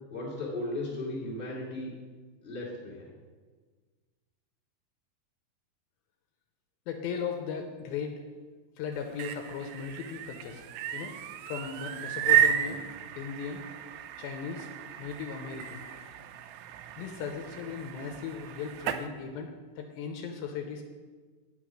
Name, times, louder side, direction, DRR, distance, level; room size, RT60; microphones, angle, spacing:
voice 1, 0.1-1.9 2.4-3.1 12.7-12.8, left 2 dB, 5° right, -7 dB, 0.8 m, -36 dB
voice 2, 6.9-8.2 8.8-10.6 10.9-11.1 11.5-12.8 13.1-13.6 14.2-14.7 15.0-15.8 17.0-20.8, left 6 dB, 80° left, 4 dB, 2.4 m, -37 dB
sound 1, 8.9-19.1, right 10 dB, 85° right, 2.5 m, -33 dB
8.9 x 6.1 x 6.2 m, 1.4 s
omnidirectional pair, 4.7 m